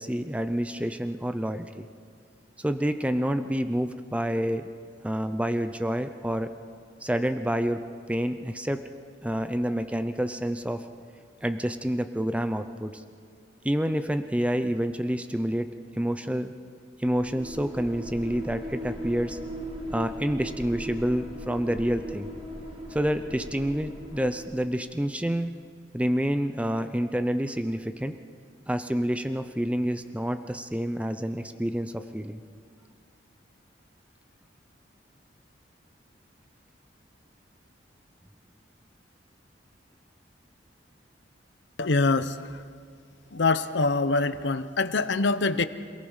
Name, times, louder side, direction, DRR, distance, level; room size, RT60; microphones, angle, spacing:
voice 1, 0.0-1.9 2.6-4.7 5.0-6.5 7.0-7.8 8.1-8.8 9.2-10.8 11.4-13.0 13.6-15.7 15.9-16.5 17.0-19.4 19.9-22.3 22.9-25.5 25.9-28.2 28.7-32.4, equal, 5° right, 9 dB, 0.6 m, -28 dB
sound 1, 17.0-24.8, equal, 30° right, 2.6 m, -39 dB
voice 2, 41.8-42.3 43.3-45.6, left 3 dB, 75° left, 12 dB, 0.9 m, -24 dB
27.5 x 18.0 x 5.6 m, 2.1 s
head